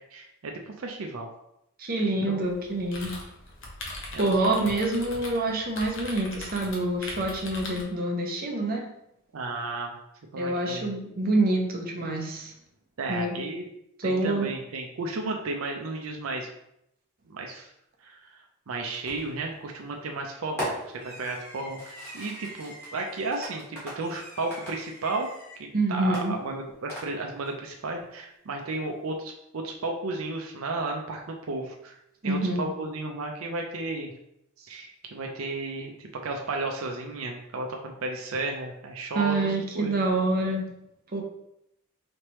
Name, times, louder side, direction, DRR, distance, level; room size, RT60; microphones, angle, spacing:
voice 1, 0.1-1.3 2.0-2.4 4.1-4.7 9.3-10.0 10.3-10.9 13.0-13.6 14.0-16.5 17.3-17.7 18.0-25.3 25.6-32.0 32.2-34.1 34.6-40.0, right 3 dB, 75° right, 2 dB, 0.5 m, -33 dB
voice 2, 1.8-3.1 4.2-8.9 10.4-12.5 13.1-13.4 14.0-14.5 25.7-26.3 32.2-32.7 39.1-40.7 41.1-41.2, right 2 dB, 45° right, 1 dB, 0.8 m, -26 dB
Mechanical Keyboard Typing (Treble Version), 2.4-7.8, left 2 dB, 65° left, 0.9 m, -40 dB
Fireworks, 19.1-19.5 20.6-25.6 26.1-27.5, equal, 10° left, 1.6 m, -40 dB
4.3 x 3.2 x 3.0 m, 0.80 s
head